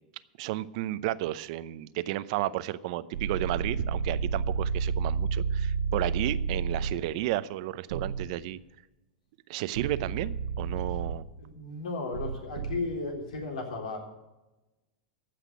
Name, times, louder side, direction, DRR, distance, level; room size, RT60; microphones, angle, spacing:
voice 1, 0.4-8.6 9.5-11.2, right 15 dB, 60° right, 16 dB, 0.7 m, -32 dB
sound 1, 3.1-6.9 7.9-8.3 9.8-11.1 12.1-12.8, right 5 dB, 90° right, 1.4 m, -30 dB
voice 2, 11.4-14.0, left 3 dB, 85° left, 1 dB, 3.9 m, -35 dB
15.0 x 5.9 x 9.0 m, 1.0 s
hypercardioid pair, 125°, 4 cm